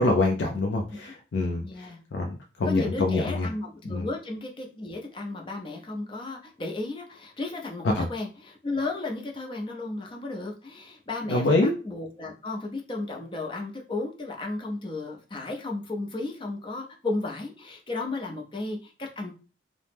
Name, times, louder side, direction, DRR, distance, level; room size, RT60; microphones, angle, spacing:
voice 1, 0.0-1.6 2.1-3.5 3.9-4.1 8.0-8.1 11.3-11.7, left 2 dB, 90° left, 1 dB, 0.4 m, -25 dB
voice 2, 1.6-2.0 2.6-19.3, left 2 dB, 30° left, 1 dB, 0.5 m, -34 dB
2.8 x 2.0 x 3.3 m, 0.35 s
head